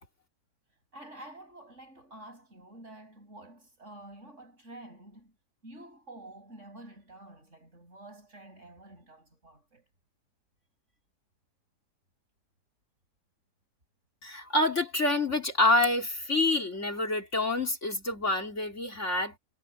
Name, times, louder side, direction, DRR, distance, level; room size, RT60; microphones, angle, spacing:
voice 1, 0.9-5.3 5.6-9.9, right 1 dB, 45° right, 8.2 m, -49 dB
voice 2, 14.2-19.4, left 2 dB, 45° left, 3.9 m, -27 dB
omnidirectional pair, 1.7 m